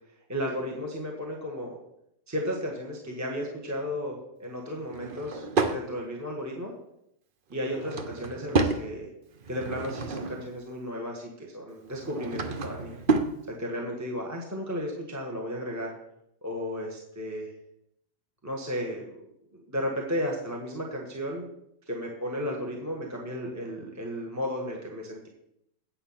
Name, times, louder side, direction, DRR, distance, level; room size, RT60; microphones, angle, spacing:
voice 1, 0.3-1.8 2.3-6.7 7.5-9.1 9.5-12.9 13.5-15.9 16.4-17.5 18.4-19.2 19.5-21.5 21.9-25.3, equal, 10° right, -1 dB, 1.2 m, -34 dB
Drawer open or close / Wood, 4.8-5.8 7.5-8.8 9.4-10.5 11.8-13.4, right 3 dB, 55° right, 0.5 m, -29 dB
8.7 x 7.6 x 5.7 m, 0.79 s
omnidirectional pair, 2.0 m